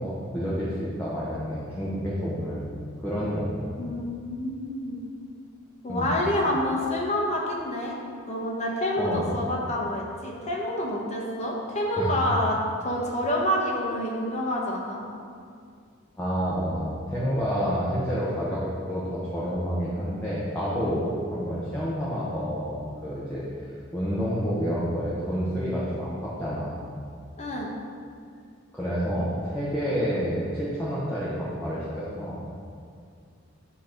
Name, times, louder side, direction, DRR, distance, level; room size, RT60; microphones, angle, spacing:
voice 1, 0.0-3.7 5.9-6.1 9.0-9.3 12.0-12.2 16.2-22.8 23.0-23.6 23.9-26.9 28.7-32.4, equal, 10° left, -9 dB, 1.0 m, -29 dB
voice 2, 3.8-5.0 5.8-8.0 8.3-15.1 27.4-27.7, left 1 dB, 35° left, -2 dB, 1.0 m, -28 dB
8.3 x 3.0 x 5.0 m, 2.2 s
head